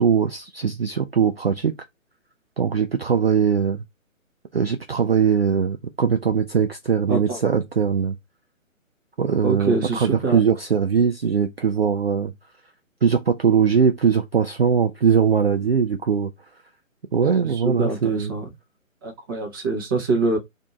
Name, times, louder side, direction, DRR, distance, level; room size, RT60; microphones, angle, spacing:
voice 1, 0.0-1.8 2.6-3.8 4.5-8.1 9.2-12.3 13.0-16.3 17.1-18.3, right 6 dB, 50° right, 0.4 m, -21 dB
voice 2, 7.1-7.4 9.4-10.4 17.4-18.5 19.0-20.4, right 3 dB, 15° right, 0.7 m, -25 dB
2.6 x 2.6 x 4.2 m
figure-of-eight pair, 140°, 41 cm